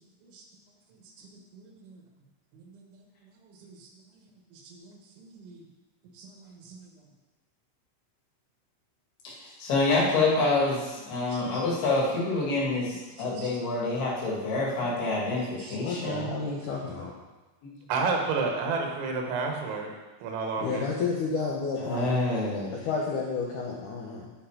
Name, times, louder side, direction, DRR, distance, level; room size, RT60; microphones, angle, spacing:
voice 1, 1.5-2.0 2.5-3.0 3.5-3.9 4.5-5.6 6.2-6.9 11.4-11.6 13.4-13.5 15.6-15.8 16.6-16.8 17.9-19.9 20.2-20.9, right 4 dB, 90° right, 2 dB, 3.8 m, -33 dB
voice 2, 9.2-16.3 17.6-17.7 21.8-22.7, left 2 dB, 65° left, -5 dB, 4.2 m, -27 dB
voice 3, 15.8-17.1 20.6-22.1 22.9-24.3, left 4 dB, 80° left, -2 dB, 1.8 m, -31 dB
12.5 x 5.5 x 5.0 m, 1.2 s
omnidirectional pair, 5.2 m